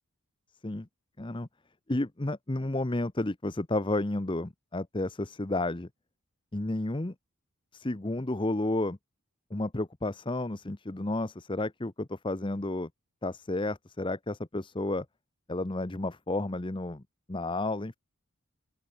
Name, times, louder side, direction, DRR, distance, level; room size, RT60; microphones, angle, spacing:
voice 1, 1.2-1.5 1.9-5.9 6.5-7.1 7.7-9.0 9.5-12.9 13.2-15.1 15.5-17.0 17.3-18.0, left 2 dB, 20° left, 0.8 m, -31 dB
open air
head